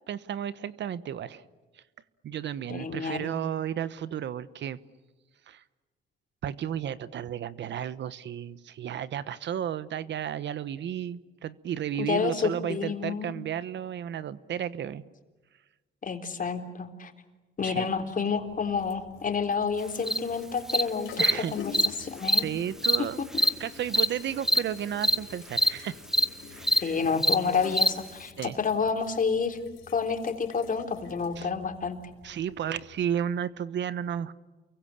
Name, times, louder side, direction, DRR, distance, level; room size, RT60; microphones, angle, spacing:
voice 1, 0.1-1.4 2.2-4.8 5.5-5.6 6.4-15.0 17.6-17.9 21.2-21.5 22.2-23.2 23.6-26.0 26.5-26.9 28.4-28.6 31.4-31.5 32.2-34.3, right 9 dB, 65° right, 16 dB, 1.1 m, -33 dB
voice 2, 2.7-3.3 12.0-13.3 16.0-17.1 17.6-21.7 22.0-22.5 23.0-23.1 23.3-23.4 26.8-29.6 29.9-32.0, left 5 dB, 45° left, 6 dB, 3.7 m, -29 dB
sound 1, 18.2-33.2, left 7 dB, 90° left, 4.1 m, -48 dB
Cricket, 20.1-20.2 20.7-20.8 21.2-21.3 21.7-21.9 22.2-22.4 22.8-23.0 23.4-23.5 23.9-24.1 24.4-24.6 25.0-25.2 25.5-25.7 26.1-26.3 26.6-26.8 27.2-27.4 27.7-27.9, equal, ahead, 1.4 m, -22 dB
29.0 x 23.0 x 8.8 m, 1.2 s
cardioid pair, 90°, 20 cm